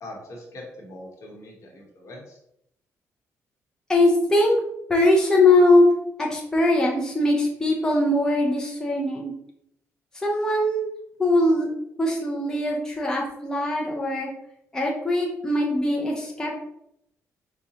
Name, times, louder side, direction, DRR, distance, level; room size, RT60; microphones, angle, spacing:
voice 1, 0.0-2.4, left 1 dB, 60° left, -1 dB, 1.1 m, -42 dB
voice 2, 3.9-4.6 4.9-5.8 6.2-9.3 10.1-10.9 11.2-11.7 12.0-14.3 14.7-16.5, left 2 dB, 10° left, -3 dB, 0.6 m, -21 dB
4.9 x 2.2 x 2.8 m, 0.76 s
cardioid pair, 125°, 6 cm